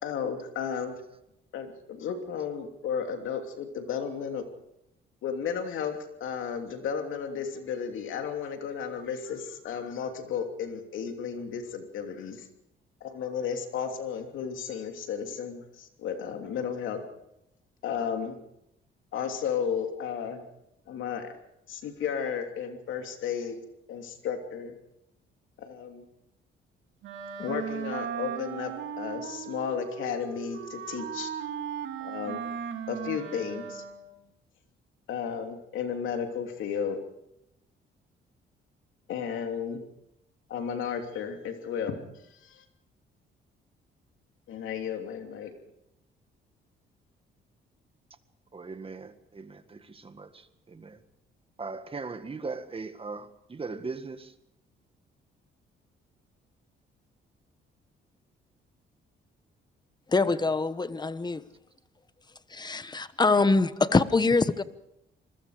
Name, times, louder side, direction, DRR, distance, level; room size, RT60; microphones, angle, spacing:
voice 1, 0.0-1.0 1.5-4.4 5.2-12.5 13.0-17.0 17.8-18.4 19.1-20.4 20.9-21.3 21.7-23.6 23.9-24.7 25.6-26.0 27.4-31.3 32.0-32.4 32.9-33.8 35.1-37.0 39.1-39.8 40.5-42.0 42.4-42.6 44.5-45.5, left 7 dB, 80° left, 5 dB, 3.1 m, -33 dB
Wind instrument woodwind instrument, 27.0-34.2, right 8 dB, 80° right, 3.1 m, -37 dB
voice 2, 48.5-51.0 51.6-54.3 60.3-60.4, right 4 dB, 30° right, 10 dB, 1.8 m, -39 dB
voice 3, 60.1-61.4 62.5-64.6, left 3 dB, 20° left, 14 dB, 1.2 m, -24 dB
27.0 x 21.5 x 5.0 m, 0.83 s
cardioid pair, 90°, 20 cm